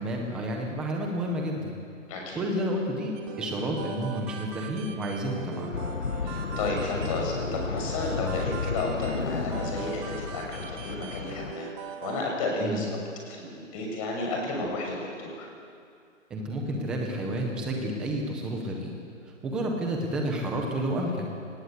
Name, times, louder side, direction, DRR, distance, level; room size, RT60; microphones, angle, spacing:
voice 1, 0.0-1.8 2.4-5.7 12.6-12.8 16.3-18.9 19.4-21.3, right 1 dB, ahead, 1 dB, 0.6 m, -30 dB
voice 2, 2.1-2.4 6.2-11.7 12.0-12.9 13.3-15.5, left 2 dB, 25° left, 0 dB, 6.4 m, -32 dB
sound 1, 3.2-12.2, right 7 dB, 15° right, 1.6 m, -41 dB
sound 2, 5.7-11.5, left 5 dB, 85° left, 1.4 m, -33 dB
30.0 x 19.5 x 8.0 m, 2.4 s
hypercardioid pair, 160°, 38 cm